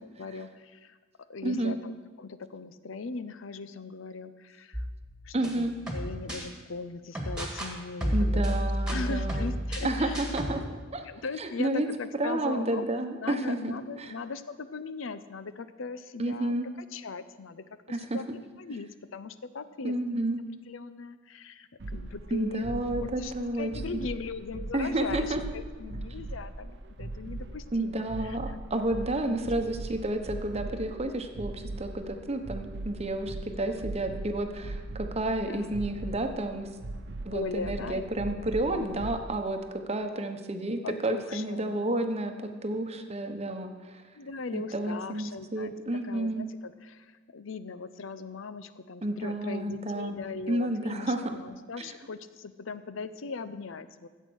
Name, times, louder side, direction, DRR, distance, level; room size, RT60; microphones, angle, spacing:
voice 1, 0.0-1.0 1.3-4.8 5.2-8.4 8.9-10.2 11.0-12.9 13.2-18.2 18.6-20.2 20.7-23.3 23.6-26.7 27.0-28.6 29.3-29.5 33.5-33.8 35.4-35.8 37.3-38.0 38.6-39.0 40.8-41.9 44.2-54.1, left 4 dB, 75° left, 13 dB, 0.6 m, -39 dB
voice 2, 1.4-1.7 5.3-5.7 8.1-9.5 9.8-11.1 11.4-11.9 12.2-14.1 16.2-16.7 17.9-18.2 19.8-20.4 22.3-24.0 24.7-25.4 27.7-36.7 37.2-44.0 44.5-46.4 49.0-50.2 50.5-51.2 51.8-51.9, right 1 dB, 30° right, 6 dB, 0.9 m, -31 dB
sound 1, 4.7-6.4 7.1-7.7 8.0-10.6, equal, 5° right, 1.8 m, -31 dB
sound 2, 21.8-39.2, right 2 dB, 60° right, 0.7 m, -40 dB
13.5 x 8.2 x 6.3 m, 1.4 s
head